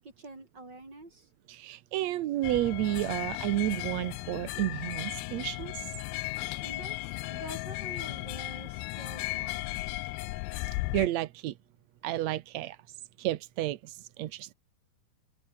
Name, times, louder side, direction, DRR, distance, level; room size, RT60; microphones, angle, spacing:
voice 1, 0.2-1.3 6.6-9.9, right 2 dB, 25° right, 7.5 m, -47 dB
voice 2, 1.5-5.9 10.9-11.5 12.0-12.8 13.2-14.5, right 14 dB, 75° right, 1.6 m, -31 dB
sound 1, 2.4-11.1, left 21 dB, 85° left, 2.4 m, -36 dB
omnidirectional pair, 4.3 m